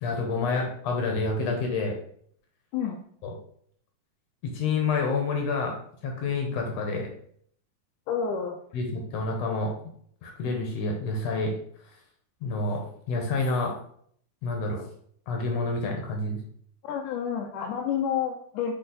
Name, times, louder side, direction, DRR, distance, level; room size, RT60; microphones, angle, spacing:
voice 1, 0.0-2.0 3.2-3.3 4.4-5.7 6.0-7.1 8.7-9.7 10.2-11.6 12.4-13.7 14.4-14.8 15.3-16.4, left 3 dB, 65° left, 2 dB, 1.9 m, -28 dB
voice 2, 8.1-8.6 16.8-18.7, left 7 dB, 85° left, 2 dB, 2.1 m, -29 dB
6.9 x 4.1 x 3.8 m, 0.63 s
omnidirectional pair, 3.5 m